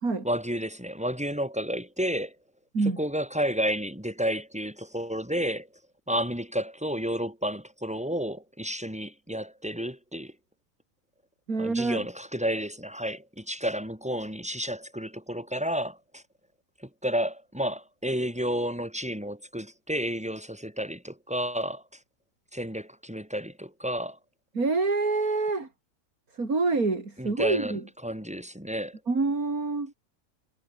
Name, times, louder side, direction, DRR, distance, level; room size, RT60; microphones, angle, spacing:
voice 1, 0.2-2.3 3.0-5.7 6.1-10.3 11.6-16.2 16.8-21.8 22.5-24.2 27.2-29.0, equal, 5° right, 7.8 m, -31 dB
voice 2, 11.5-12.1 24.5-25.7 26.3-27.8 29.1-29.9, right 3 dB, 65° right, 4.3 m, -26 dB
omnidirectional pair, 1.6 m